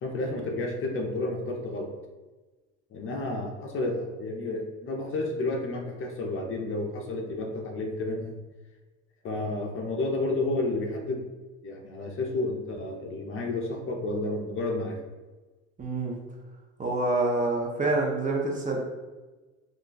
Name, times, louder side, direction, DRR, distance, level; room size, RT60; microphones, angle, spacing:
voice 1, 0.0-1.9 2.9-8.4 9.2-11.2 11.6-15.0, left 2 dB, 35° left, 2 dB, 0.6 m, -31 dB
voice 2, 15.8-16.2 16.8-18.8, right 2 dB, 25° right, -1 dB, 0.6 m, -27 dB
2.5 x 2.2 x 3.8 m, 1.2 s
hypercardioid pair, 85°, 35 cm